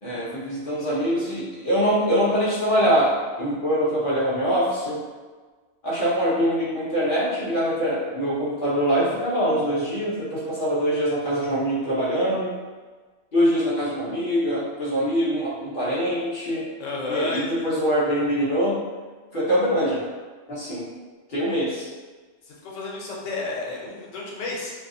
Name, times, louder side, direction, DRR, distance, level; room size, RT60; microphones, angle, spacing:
voice 1, 0.0-5.0 5.8-12.5 13.3-16.7 17.1-18.8 19.3-20.1 20.5-20.9 21.3-21.9, equal, 50° left, -9 dB, 0.8 m, -23 dB
voice 2, 16.8-17.6 22.4-24.7, left 3 dB, 90° left, -4 dB, 1.1 m, -31 dB
2.7 x 2.4 x 2.6 m, 1.4 s
omnidirectional pair, 1.3 m